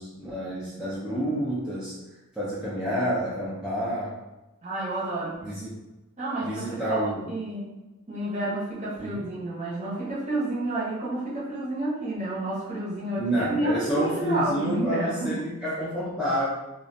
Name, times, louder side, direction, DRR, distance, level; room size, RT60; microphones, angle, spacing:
voice 1, 0.0-1.9 2.3-4.1 5.4-5.7 6.4-7.2 9.0-9.2 13.2-16.5, equal, 5° right, -10 dB, 0.4 m, -29 dB
voice 2, 4.6-5.4 6.2-7.7 8.1-15.5, right 2 dB, 30° right, -7 dB, 0.8 m, -30 dB
2.3 x 2.1 x 2.5 m, 1.0 s
head